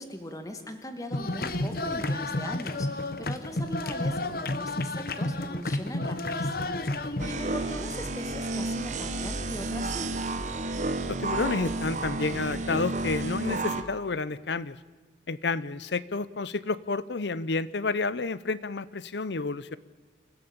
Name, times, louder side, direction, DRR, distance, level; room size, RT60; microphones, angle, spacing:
voice 1, 0.0-10.1, left 1 dB, 20° left, 7 dB, 1.9 m, -40 dB
sound 1, 1.1-7.3, left 2 dB, 55° left, 1.1 m, -31 dB
sound 2, 7.2-13.8, right 2 dB, 45° right, 1.4 m, -31 dB
voice 2, 11.1-14.8 15.3-19.8, left 3 dB, 80° left, 18 dB, 0.8 m, -30 dB
27.5 x 13.5 x 8.8 m, 1.3 s
head